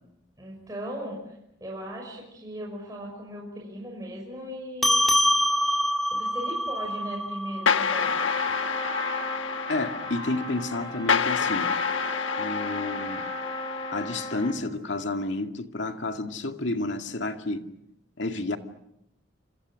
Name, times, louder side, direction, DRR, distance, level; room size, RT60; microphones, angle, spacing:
voice 1, 0.4-1.3 1.6-5.1 5.6-5.8 6.1-8.2, equal, 20° right, 6.1 m, -38 dB
sound 1, 4.8-9.6, equal, ahead, 2.2 m, -26 dB
sound 2, 7.7-14.5, left 6 dB, 90° left, 1.2 m, -29 dB
Trumpet, 8.0-14.7, left 1 dB, 25° left, 6.4 m, -35 dB
voice 2, 9.7-11.7 12.4-13.2 13.9-17.6 18.2-18.6, left 2 dB, 70° left, 2.2 m, -30 dB
29.5 x 27.5 x 6.4 m
head